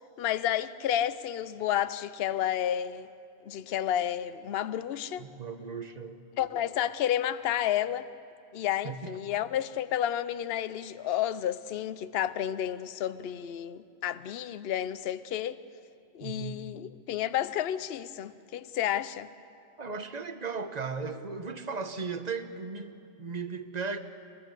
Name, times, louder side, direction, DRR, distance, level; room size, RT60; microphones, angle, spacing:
voice 1, 0.2-3.1 3.4-5.3 6.3-8.1 8.5-15.6 16.1-19.3, left 11 dB, 55° left, 0.8 m, -31 dB
voice 2, 5.2-6.2 8.8-9.2 16.2-16.6 19.8-24.0, right 5 dB, 35° right, 1.1 m, -36 dB
25.5 x 21.0 x 6.7 m
omnidirectional pair, 1.4 m